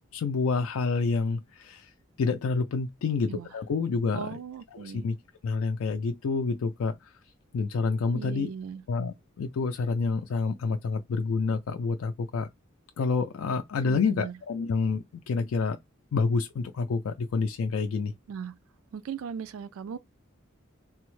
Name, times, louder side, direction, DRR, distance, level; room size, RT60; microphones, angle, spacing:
voice 1, 0.1-1.9 2.2-4.3 4.7-5.2 5.4-7.1 7.5-8.5 8.9-12.5 13.0-15.8 16.1-18.1, left 4 dB, 85° left, 0.3 m, -28 dB
voice 2, 4.1-5.1 8.1-8.8 13.9-14.4 18.3-18.5 18.9-20.0, right 7 dB, 90° right, 0.3 m, -38 dB
3.3 x 2.0 x 3.1 m
head